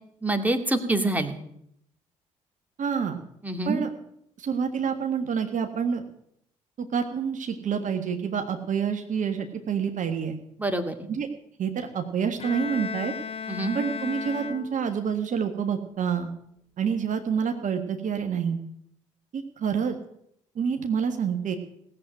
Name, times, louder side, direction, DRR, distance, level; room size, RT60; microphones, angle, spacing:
voice 1, 0.2-1.4 3.4-3.8 10.6-11.1 13.5-13.8, right 2 dB, 10° right, 5 dB, 2.2 m, -26 dB
voice 2, 2.8-3.2 3.6-3.9 4.4-6.0 6.8-10.4 11.1-11.3 11.6-13.1 13.7-16.3 16.8-18.6 19.3-20.0 20.5-21.6, right 7 dB, 50° right, 5 dB, 1.6 m, -27 dB
Bowed string instrument, 12.4-15.1, left 6 dB, 35° left, 1.4 m, -35 dB
17.5 x 7.9 x 9.1 m, 0.72 s
figure-of-eight pair, 45°, 17 cm